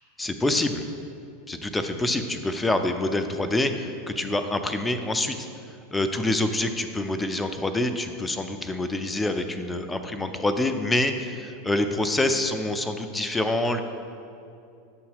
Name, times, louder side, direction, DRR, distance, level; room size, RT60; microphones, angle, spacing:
voice 1, 0.2-0.8 1.5-5.5 5.9-13.8, left 1 dB, 10° left, 7 dB, 0.4 m, -26 dB
7.5 x 2.8 x 5.5 m, 2.5 s
figure-of-eight pair, 85°, 0 cm